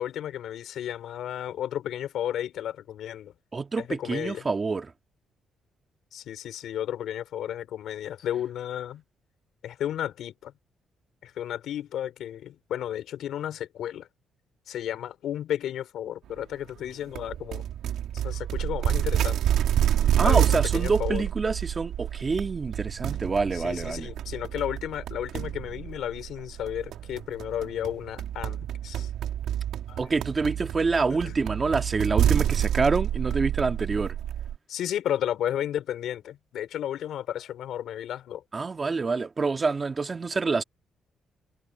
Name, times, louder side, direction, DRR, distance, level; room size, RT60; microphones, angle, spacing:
voice 1, 0.0-3.3 3.8-4.5 6.1-9.0 9.6-10.5 11.2-14.1 14.7-17.6 18.2-19.4 20.2-21.2 23.5-29.1 29.9-30.0 31.2-31.3 33.3-33.4 34.7-38.4, left 11 dB, 75° left, 3.2 m, -33 dB
voice 2, 3.5-4.9 20.2-24.1 30.0-34.1 38.5-40.6, right 4 dB, 30° right, 1.7 m, -27 dB
sound 1, 17.1-34.6, right 10 dB, 80° right, 2.1 m, -28 dB
cardioid pair, 90°, 0 cm